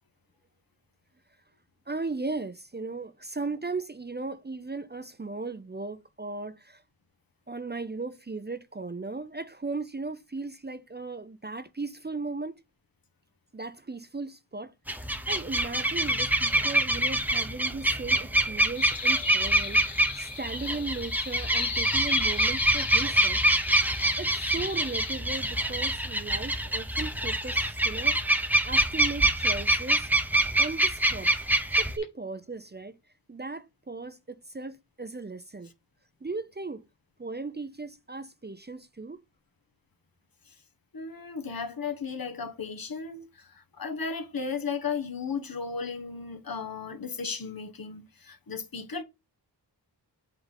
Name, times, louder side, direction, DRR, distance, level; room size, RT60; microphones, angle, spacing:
voice 1, 1.9-6.8 7.5-12.6 13.5-14.7 15.0-23.4 24.2-28.2 28.6-30.1 30.6-31.3 31.8-33.0 33.3-35.7 36.2-36.9 37.2-39.2, right 3 dB, 25° right, 0.6 m, -37 dB
sound 1, 14.9-31.9, right 1 dB, 5° right, 0.9 m, -25 dB
sound 2, 18.8-25.1, left 6 dB, 85° left, 1.3 m, -38 dB
voice 2, 40.9-49.0, left 5 dB, 55° left, 1.3 m, -35 dB
8.1 x 3.5 x 4.0 m
wide cardioid pair, 65°, 42 cm